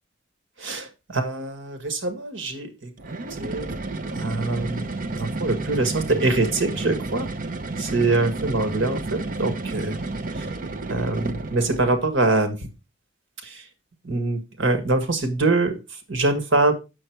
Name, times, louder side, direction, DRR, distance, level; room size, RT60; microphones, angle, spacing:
voice 1, 0.6-2.9 3.4-3.7 4.1-4.9 5.2-7.3 7.8-10.0 10.3-10.5 10.9-12.6 13.4-13.7 14.0-16.7, right 2 dB, 80° right, 8 dB, 1.6 m, -24 dB
sound 1, 3.0-12.1, right 2 dB, 45° right, 0.7 m, -31 dB
8.7 x 6.7 x 4.6 m, 0.28 s
head